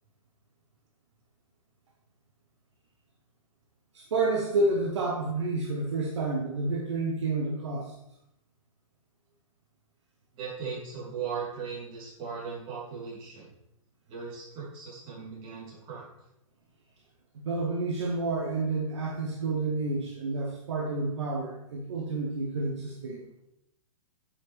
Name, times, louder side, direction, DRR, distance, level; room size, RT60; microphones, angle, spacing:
voice 1, 3.9-7.9 17.4-23.3, right 3 dB, 55° right, -2 dB, 1.5 m, -29 dB
voice 2, 10.4-13.5 14.1-16.0, right 6 dB, 30° right, -5 dB, 3.8 m, -38 dB
9.2 x 7.7 x 3.5 m, 0.81 s
figure-of-eight pair, 115°, 18 cm